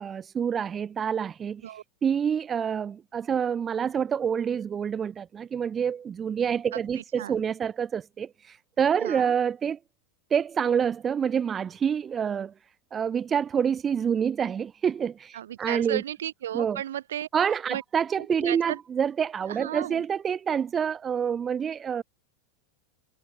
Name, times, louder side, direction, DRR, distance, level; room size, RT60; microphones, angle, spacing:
voice 1, 0.0-1.6 2.0-8.3 8.8-9.8 10.3-12.5 12.9-16.0 16.5-16.8 17.3-22.0, right 7 dB, 25° right, 3.4 m, -27 dB
voice 2, 6.7-7.4 9.0-9.3 15.3-17.3 17.7-17.8 18.2-18.8 19.5-20.0, right 11 dB, 75° right, 4.3 m, -35 dB
hypercardioid pair, 90°, 0 cm